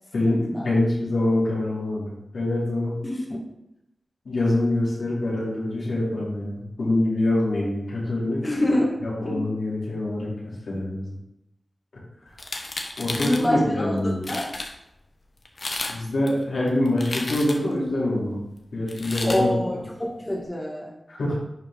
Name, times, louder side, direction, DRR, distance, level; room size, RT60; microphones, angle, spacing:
voice 1, 0.1-3.0 4.2-8.4 9.0-10.3 10.6-11.1 13.0-14.2 15.9-18.4 18.7-19.8 21.1-21.3, left 1 dB, 85° left, -7 dB, 3.2 m, -25 dB
voice 2, 3.0-3.4 8.4-9.0 9.3-9.4 13.2-14.5 19.2-20.9, left 1 dB, 30° left, -2 dB, 1.9 m, -26 dB
sound 1, 12.3-13.5 14.0-14.1 14.2-14.7 15.5-16.0 16.3-17.8 18.9-19.4, left 2 dB, 60° left, 1.1 m, -32 dB
10.5 x 4.5 x 3.8 m, 0.84 s
cardioid pair, 40°, 0 cm